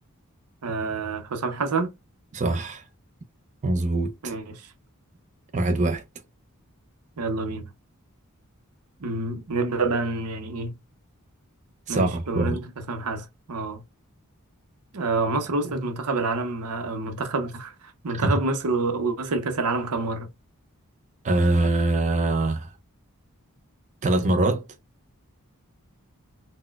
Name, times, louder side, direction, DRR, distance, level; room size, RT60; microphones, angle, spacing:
voice 1, 0.6-1.9 4.2-4.7 7.2-7.7 9.0-10.7 11.9-12.6 12.9-13.8 14.9-17.7 18.0-20.3, right 3 dB, 90° right, 0.7 m, -27 dB
voice 2, 2.3-2.9 3.6-4.3 5.5-6.0 11.9-12.6 18.1-18.4 21.2-22.7 24.0-24.6, right 2 dB, 35° right, 0.4 m, -23 dB
4.1 x 2.1 x 2.2 m
head